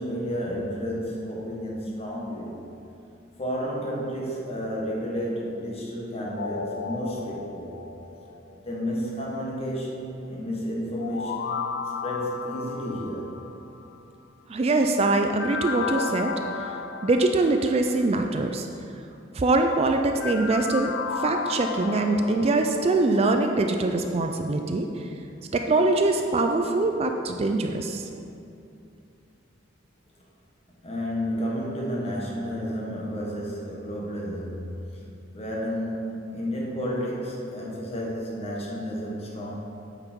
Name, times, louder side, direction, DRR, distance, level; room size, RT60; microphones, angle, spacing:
voice 1, 0.0-2.6 3.4-7.7 8.5-11.6 12.0-13.4 30.8-34.9 35.3-39.5, equal, 35° left, -3 dB, 1.5 m, -31 dB
sound 1, 6.4-8.7 11.0-14.0 15.4-18.2 20.2-24.7 25.1-25.2, left 5 dB, 65° left, 0.4 m, -34 dB
voice 2, 14.5-16.3 16.6-16.7 17.0-18.7 19.3-25.0 25.5-28.0, right 2 dB, 35° right, 5 dB, 0.4 m, -23 dB
8.8 x 5.9 x 4.5 m, 2.7 s
head